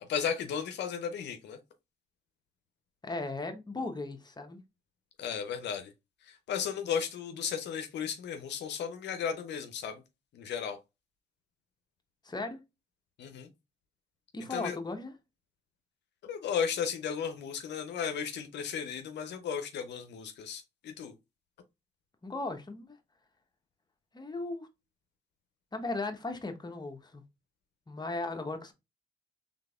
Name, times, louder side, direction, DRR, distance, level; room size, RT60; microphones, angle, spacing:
voice 1, 0.1-1.6 5.2-5.9 6.2-10.0 10.3-10.8 13.2-13.5 14.5-14.8 16.2-21.1, left 7 dB, 75° left, 0.6 m, -35 dB
voice 2, 3.0-4.6 12.2-12.6 14.3-15.1 22.2-23.0 24.1-24.7 25.7-27.2 27.9-28.7, left 2 dB, 25° left, 0.9 m, -37 dB
3.8 x 3.5 x 2.3 m
supercardioid pair, 50°, 18 cm